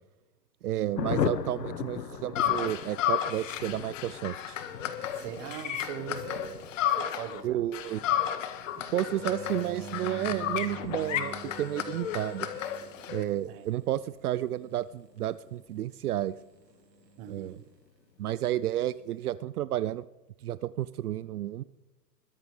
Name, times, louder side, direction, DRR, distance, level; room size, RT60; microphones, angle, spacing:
voice 1, 0.6-4.6 7.4-8.0 8.9-12.5 13.1-16.3 17.3-17.6 18.2-20.0 20.4-21.6, right 13 dB, 65° right, 16 dB, 0.5 m, -31 dB
Thunder, 0.9-17.1 17.4-17.5 17.7-17.9 18.1-18.5, left 8 dB, 85° left, 1.0 m, -40 dB
sound 1, 2.4-7.4 7.7-13.2, left 10 dB, 50° left, 1.6 m, -32 dB
voice 2, 5.1-7.6 13.5-13.7 17.2-17.6, right 8 dB, 25° right, 9 dB, 1.1 m, -41 dB
sound 2, 9.1-13.7 17.0-17.5, right 4 dB, 85° right, 2.1 m, -44 dB
21.5 x 11.0 x 3.3 m, 1.0 s
hypercardioid pair, 135°, 49 cm